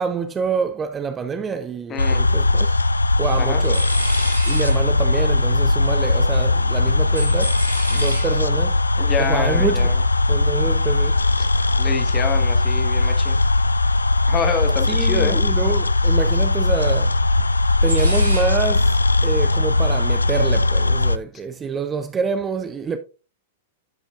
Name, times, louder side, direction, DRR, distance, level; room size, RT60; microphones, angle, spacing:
voice 1, 0.0-2.7 3.2-3.8 4.5-7.5 7.9-8.8 9.2-9.9 10.3-11.2 14.9-17.1 17.8-23.0, right 5 dB, 20° right, 0.6 m, -26 dB
sound 1, 1.9-21.2, left 2 dB, 80° left, 0.3 m, -19 dB
voice 2, 1.9-2.2 3.4-3.6 9.0-10.0 11.7-13.4 14.3-15.4, left 5 dB, 25° left, 1.4 m, -27 dB
sound 2, 3.0-3.4 3.6-6.4 6.7-13.0 13.2-14.3 14.6-18.9, equal, 85° right, 2.5 m, -33 dB
11.5 x 6.2 x 2.5 m
figure-of-eight pair, 100°, 0 cm